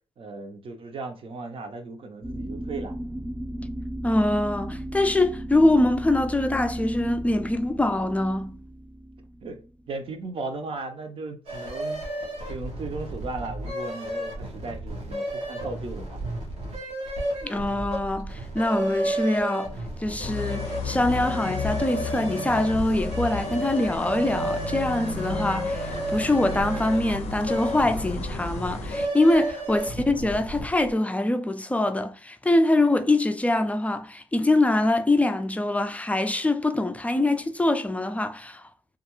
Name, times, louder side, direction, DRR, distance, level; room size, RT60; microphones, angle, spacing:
voice 1, 0.2-2.9 9.4-12.0 12.5-16.2, right 3 dB, 55° right, 0.7 m, -36 dB
sound 1, 2.2-10.1, right 1 dB, 20° right, 0.7 m, -35 dB
voice 2, 4.0-8.6 17.4-19.7 20.0-38.6, left 2 dB, 15° left, 0.4 m, -24 dB
sound 2, 11.5-30.9, right 1 dB, 85° right, 0.9 m, -32 dB
sound 3, 20.2-29.1, left 4 dB, 80° left, 0.5 m, -34 dB
2.3 x 2.2 x 3.0 m
supercardioid pair, 60°, 11 cm